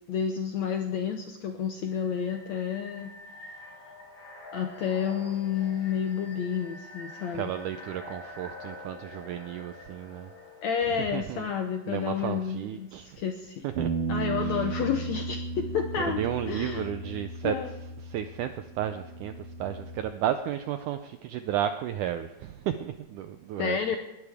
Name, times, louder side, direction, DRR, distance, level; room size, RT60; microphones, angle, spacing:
voice 1, 0.1-3.1 4.5-7.5 10.6-13.6 14.1-16.9 17.4-17.7 23.6-24.0, left 7 dB, 75° left, 5 dB, 1.7 m, -30 dB
sound 1, 1.9-12.7, left 2 dB, 45° left, 3.8 m, -47 dB
voice 2, 7.3-10.3 11.1-11.5 11.8-13.2 13.6-13.9 14.4-14.6 16.0-17.6 18.1-24.0, right 10 dB, 85° right, 9 dB, 1.8 m, -33 dB
sound 2, 13.8-20.0, right 3 dB, 60° right, 2.6 m, -35 dB
20.0 x 12.0 x 3.5 m, 0.97 s
omnidirectional pair, 4.3 m